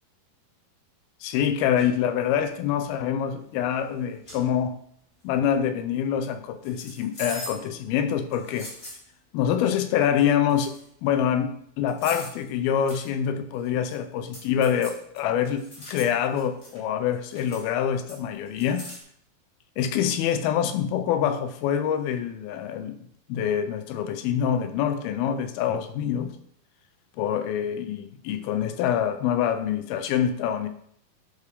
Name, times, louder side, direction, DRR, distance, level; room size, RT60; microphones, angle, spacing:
voice 1, 1.2-4.7 5.2-8.7 9.3-18.9 19.8-23.0 23.3-26.3 27.2-30.7, left 9 dB, 90° left, 2.5 m, -25 dB
sound 1, 1.7-2.0 2.6-2.9 3.8-3.9 4.2-4.5 6.6-7.7 8.3-9.0 10.2-10.3 10.5-10.9 11.9-12.4 12.9-13.1 13.5-14.0 14.3-16.8 17.1-17.7 18.1-19.0, left 1 dB, 30° left, 1.8 m, -41 dB
11.0 x 4.8 x 3.5 m
omnidirectional pair, 4.4 m